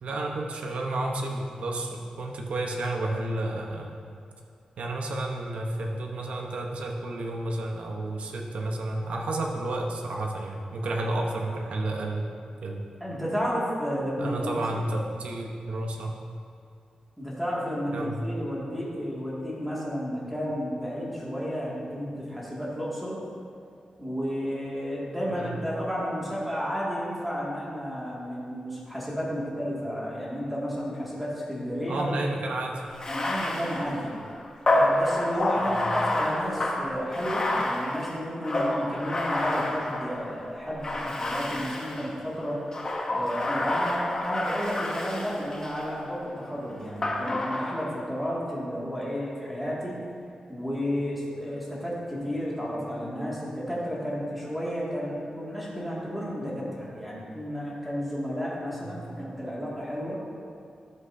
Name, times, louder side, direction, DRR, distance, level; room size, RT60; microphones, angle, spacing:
voice 1, 0.0-3.9 4.8-12.3 12.6-12.8 14.2-16.2 17.9-18.3 25.3-25.6 31.9-32.8 35.5-35.8 58.7-58.9, right 2 dB, 80° right, 0 dB, 1.0 m, -31 dB
voice 2, 13.0-14.6 17.2-23.2 24.0-32.2 33.1-34.1 34.6-42.6 43.1-50.0 50.5-60.2, equal, ahead, -7 dB, 2.2 m, -32 dB
Bathtub (filling or washing), 32.9-40.3 40.8-42.1 42.7-45.9 47.0-48.0, left 1 dB, 30° left, 0.9 m, -28 dB
12.0 x 7.6 x 2.7 m, 2.5 s
wide cardioid pair, 130°, 2 cm